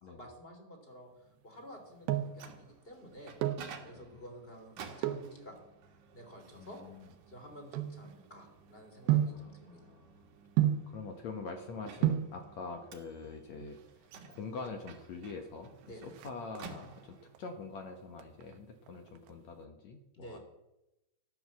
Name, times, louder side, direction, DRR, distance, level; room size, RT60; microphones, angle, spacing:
voice 1, 0.0-3.4 3.8-5.6 6.1-6.8 7.3-9.9 15.9-16.1 20.2-20.4, equal, 15° left, 4 dB, 2.7 m, -51 dB
sound 1, 1.7-2.5 3.2-3.7 5.0-5.4 6.1-8.5 9.1-9.5 10.6-11.0 11.7-11.8 12.0-12.4 13.5-14.0 14.3-14.4 14.7-14.8 15.2-15.6 15.9-16.9 17.4-17.8 18.1-19.3 19.6-19.7, right 12 dB, 80° right, 3.1 m, -32 dB
Microwave oven, 2.0-17.5, right 5 dB, 55° right, 2.6 m, -54 dB
voice 2, 6.5-7.1 9.4-10.2 10.9-13.8 14.3-15.7 16.0-20.4, left 4 dB, 70° left, 5 dB, 1.7 m, -44 dB
14.0 x 12.0 x 7.4 m, 0.92 s
omnidirectional pair, 4.8 m